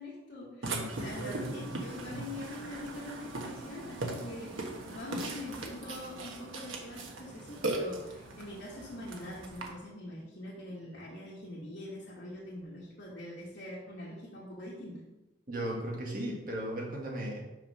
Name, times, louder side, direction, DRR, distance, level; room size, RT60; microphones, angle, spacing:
voice 1, 0.0-15.0, left 1 dB, 60° left, -8 dB, 1.9 m, -44 dB
Burping eructation, 0.6-9.7, right 2 dB, 85° right, 1.2 m, -39 dB
voice 2, 0.7-1.7 15.5-17.4, right 1 dB, 45° right, -2 dB, 1.8 m, -37 dB
6.2 x 5.1 x 5.6 m, 1.0 s
head